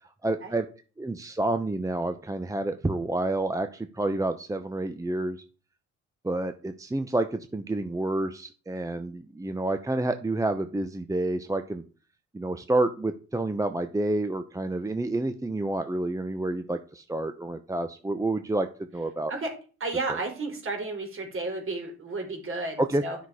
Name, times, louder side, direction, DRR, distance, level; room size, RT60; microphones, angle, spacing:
voice 1, 0.2-0.7 1.0-5.4 6.2-11.8 12.3-18.7 18.9-19.3 22.8-23.0, right 2 dB, 10° right, 8 dB, 0.8 m, -29 dB
voice 2, 19.8-23.2, right 3 dB, 45° right, 3 dB, 4.2 m, -32 dB
11.0 x 6.0 x 4.8 m, 0.38 s
cardioid pair, 90°, 30 cm